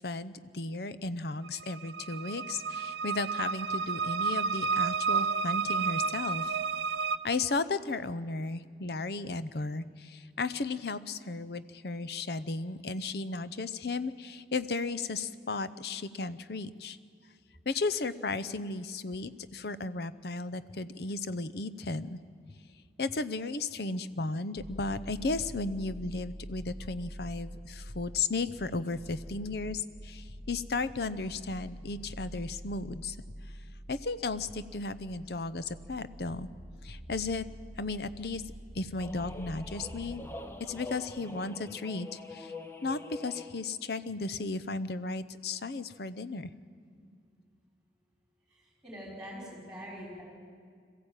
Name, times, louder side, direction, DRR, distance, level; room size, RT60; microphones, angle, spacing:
voice 1, 0.0-6.6 7.2-17.0 17.7-22.2 23.0-33.2 33.9-36.5 36.8-37.5 37.8-38.4 38.7-40.3 40.6-42.5 42.8-46.5, left 3 dB, 60° left, 14 dB, 0.7 m, -35 dB
sound 1, 1.4-7.2, right 5 dB, 65° right, 0.5 m, -31 dB
sound 2, 24.6-40.2, equal, 30° left, 3.8 m, -46 dB
sound 3, 39.0-43.7, left 2 dB, 10° left, 0.8 m, -45 dB
voice 2, 48.5-50.2, equal, 5° right, -3 dB, 5.3 m, -44 dB
21.5 x 14.5 x 9.0 m, 2.1 s
head